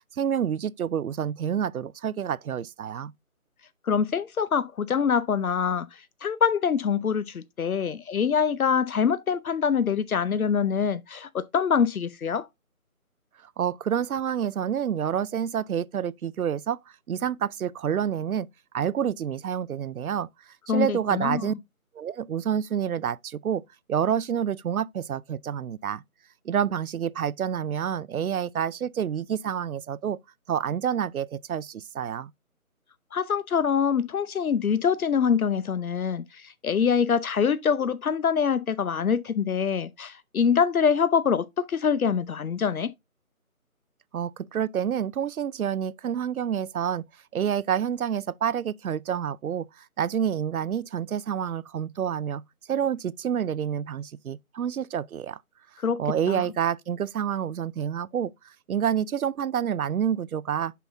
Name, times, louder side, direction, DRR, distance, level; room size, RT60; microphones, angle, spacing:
voice 1, 0.1-3.1 13.6-16.8 17.1-18.5 18.7-20.3 20.7-21.5 22.0-23.6 23.9-26.0 26.5-30.2 30.5-32.3 44.1-47.0 47.3-52.4 52.7-55.4 56.0-58.3 58.7-60.7, right 8 dB, 75° right, 0.5 m, -28 dB
voice 2, 3.8-12.5 20.7-21.5 33.1-42.9 55.8-56.0 56.3-56.4, left 7 dB, 75° left, 0.6 m, -25 dB
8.2 x 5.7 x 2.6 m
figure-of-eight pair, 170°, 43 cm